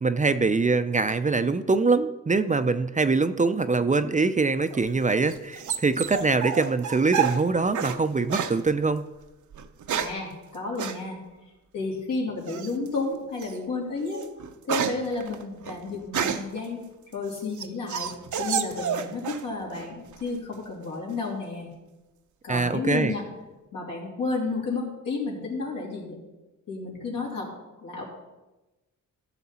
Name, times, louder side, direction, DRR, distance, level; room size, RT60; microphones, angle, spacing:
voice 1, 0.0-9.1 22.5-23.1, right 3 dB, 25° right, 10 dB, 0.5 m, -23 dB
sound 1, 4.7-8.0 8.3-8.6 9.5-10.3 10.8-11.0 12.5-12.9 13.4-13.6 14.0-16.6 17.1-19.5 19.7-20.4, right 8 dB, 65° right, 0.7 m, -30 dB
voice 2, 10.0-11.2 11.7-14.2 14.6-16.8 17.1-21.7 22.4-23.2 23.7-26.2 26.7-27.5 27.8-28.0, left 3 dB, 80° left, -3 dB, 3.2 m, -31 dB
13.5 x 6.5 x 4.3 m, 1.1 s
cardioid pair, 75°, 33 cm